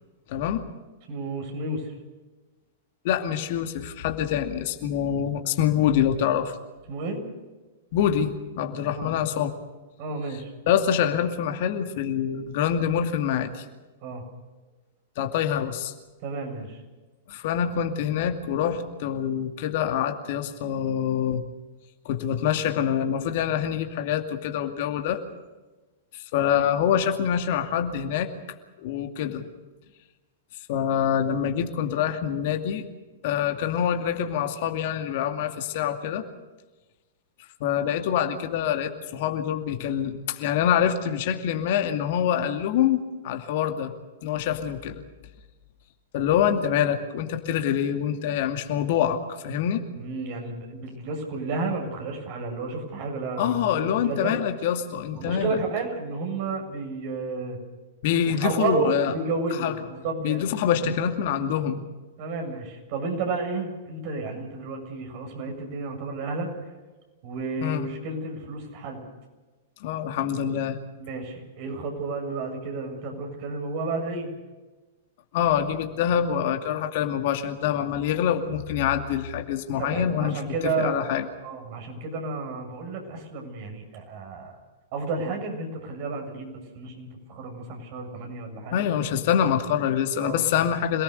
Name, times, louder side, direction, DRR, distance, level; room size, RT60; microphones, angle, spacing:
voice 1, 0.3-0.7 3.0-6.6 7.9-9.5 10.7-13.6 15.2-15.9 17.3-21.4 22.1-25.2 26.1-28.3 28.8-29.4 30.7-32.8 33.2-36.2 37.6-43.9 44.2-45.0 46.1-49.9 53.4-55.5 58.0-59.1 59.6-59.7 60.2-61.8 67.6-67.9 69.8-70.8 75.3-80.4 80.8-81.3 88.7-91.0, left 9 dB, 55° left, 6 dB, 2.3 m, -25 dB
voice 2, 1.1-1.9 6.9-7.2 8.8-9.1 10.0-10.5 14.0-14.2 16.2-16.8 50.0-54.3 55.1-57.6 58.2-60.6 62.2-66.5 67.2-69.0 71.0-74.3 79.8-81.0 81.4-84.5 84.9-88.9 90.2-90.6, right 3 dB, 50° right, 2 dB, 7.3 m, -32 dB
26.5 x 19.0 x 6.7 m, 1.2 s
figure-of-eight pair, 105°, 0 cm